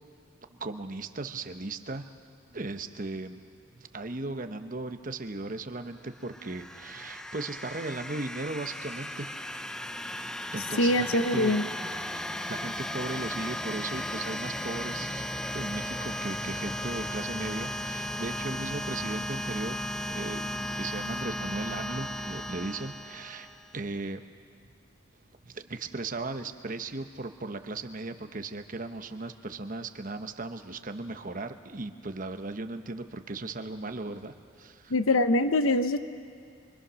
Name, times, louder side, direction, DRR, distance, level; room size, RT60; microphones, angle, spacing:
voice 1, 0.5-2.1 2.5-3.4 3.7-9.3 10.5-11.6 12.3-15.3 15.5-19.8 20.1-23.5 23.7-24.2 25.4-34.9, right 2 dB, 40° right, 8 dB, 1.0 m, -37 dB
sound 1, 6.2-23.8, left 1 dB, 5° left, 0.5 m, -36 dB
voice 2, 10.8-11.7 34.9-36.0, left 2 dB, 90° left, 10 dB, 0.9 m, -23 dB
26.5 x 24.0 x 6.3 m, 2.2 s
head